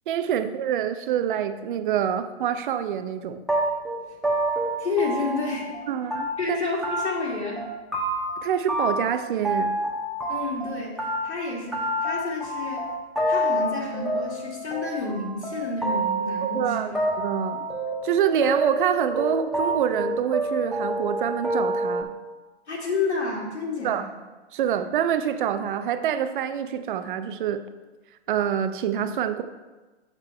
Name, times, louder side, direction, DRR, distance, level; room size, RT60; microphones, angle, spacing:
voice 1, 0.1-3.4 5.9-6.6 8.4-9.7 16.5-16.9 17.2-17.7 18.0-22.1 23.8-24.1 24.5-27.6 28.3-29.4, right 9 dB, 50° right, 9 dB, 0.7 m, -26 dB
sound 1, 3.5-5.8 6.1-6.6 6.8-7.3 7.6-8.4 8.7-10.7 11.0-22.0, right 1 dB, ahead, 1.1 m, -27 dB
voice 2, 4.8-5.7 6.4-7.7 10.3-12.9 13.3-17.0 22.7-24.1, left 3 dB, 90° left, -2 dB, 2.5 m, -30 dB
7.6 x 6.1 x 4.4 m, 1.2 s
hypercardioid pair, 130°, 32 cm